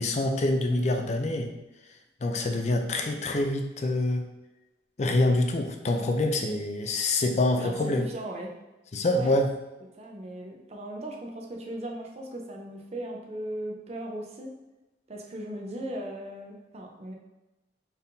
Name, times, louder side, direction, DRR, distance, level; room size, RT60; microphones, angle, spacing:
voice 1, 0.0-1.5 2.2-4.2 5.0-8.0 8.9-9.5, left 2 dB, 40° left, 4 dB, 0.5 m, -26 dB
voice 2, 7.6-8.5 9.1-9.3 10.0-14.5 15.1-17.1, right 1 dB, 40° right, 0 dB, 0.6 m, -37 dB
4.2 x 3.5 x 2.7 m, 1.1 s
head